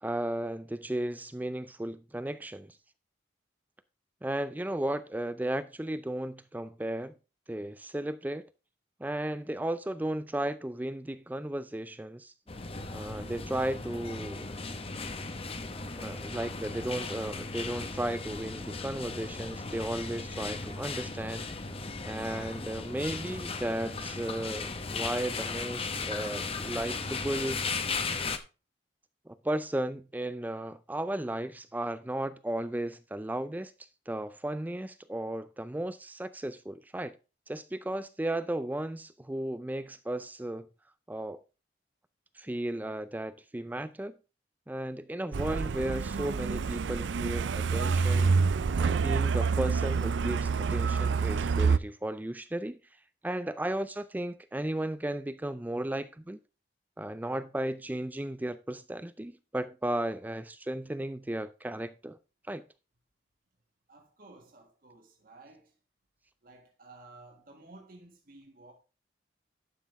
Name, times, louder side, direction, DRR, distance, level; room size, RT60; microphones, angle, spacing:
voice 1, 0.0-2.8 4.2-7.1 7.5-8.4 9.0-12.3 12.9-14.5 15.9-21.5 22.0-27.6 29.3-33.7 34.1-37.2 37.5-40.7 41.1-41.4 42.4-44.1 44.7-48.4 48.8-52.8 53.2-56.4 57.0-62.2 62.5-62.6, right 1 dB, 10° right, 0.4 m, -35 dB
sound 1, 12.5-28.4, left 4 dB, 35° left, 0.8 m, -36 dB
Truck, 45.3-51.8, right 5 dB, 80° right, 0.4 m, -27 dB
voice 2, 63.9-65.7 66.4-68.7, right 2 dB, 50° right, 1.6 m, -54 dB
11.5 x 6.0 x 3.5 m
head